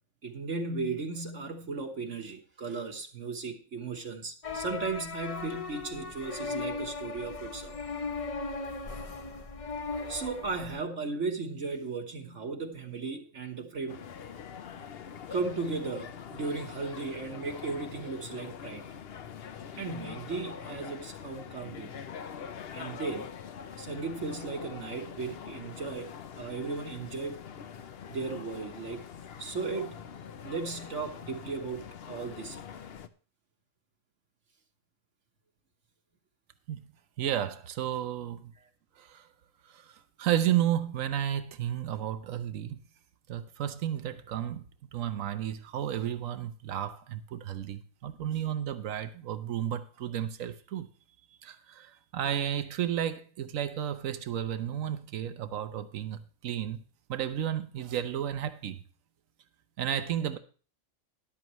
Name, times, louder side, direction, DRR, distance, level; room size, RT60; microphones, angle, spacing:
voice 1, 0.2-7.8 10.1-14.0 15.3-18.8 19.8-21.9 22.7-23.3 23.8-26.1 26.4-27.4 28.1-29.0 29.4-30.1 30.4-32.6, right 4 dB, 65° right, 1.6 m, -36 dB
sound 1, 4.4-10.8, left 4 dB, 35° left, 0.6 m, -37 dB
sound 2, 13.9-33.1, left 7 dB, 55° left, 0.9 m, -44 dB
voice 2, 37.2-38.5 39.0-39.3 39.7-42.8 43.3-44.6 44.9-50.9 51.4-56.8 57.1-58.8 59.8-60.4, right 10 dB, 85° right, 1.2 m, -32 dB
13.5 x 11.0 x 3.1 m
omnidirectional pair, 1.4 m